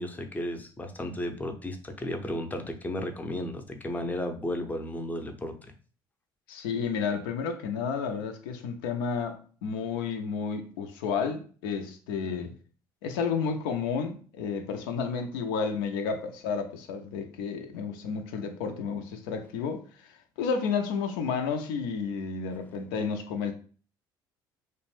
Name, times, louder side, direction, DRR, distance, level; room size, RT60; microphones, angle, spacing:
voice 1, 0.0-5.5, left 1 dB, 15° left, 0.5 m, -34 dB
voice 2, 6.5-12.5 13.0-23.5, left 5 dB, 75° left, 0.4 m, -31 dB
2.5 x 2.1 x 3.1 m
hypercardioid pair, 60°, 12 cm